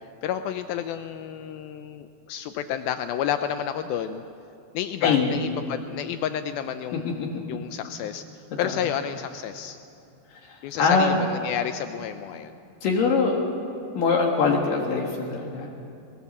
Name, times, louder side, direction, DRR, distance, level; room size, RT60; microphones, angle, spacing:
voice 1, 0.2-4.2 4.7-8.2 8.6-9.8 10.6-12.5, left 9 dB, 85° left, 9 dB, 2.1 m, -30 dB
voice 2, 5.0-5.4 7.0-7.3 8.6-8.7 10.4-11.1 12.8-13.4 13.9-15.7, left 4 dB, 60° left, 0 dB, 3.0 m, -23 dB
21.5 x 20.0 x 7.3 m, 2.6 s
omnidirectional pair, 5.0 m